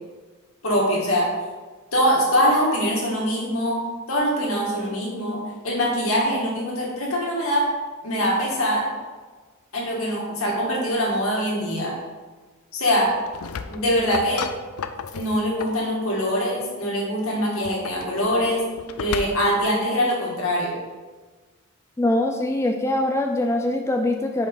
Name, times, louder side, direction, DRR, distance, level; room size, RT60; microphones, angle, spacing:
voice 1, 0.6-1.3 1.9-3.8 4.1-7.6 8.0-8.8 9.7-11.9 12.7-13.1 13.7-14.4 15.1-18.6 19.0-20.7, equal, 70° left, -4 dB, 2.1 m, -23 dB
sound 1, 13.1-15.9 17.5-19.7, left 6 dB, 90° left, 0.4 m, -34 dB
voice 2, 22.0-24.5, left 1 dB, 15° left, 3 dB, 0.3 m, -23 dB
6.8 x 5.2 x 3.9 m, 1.4 s
head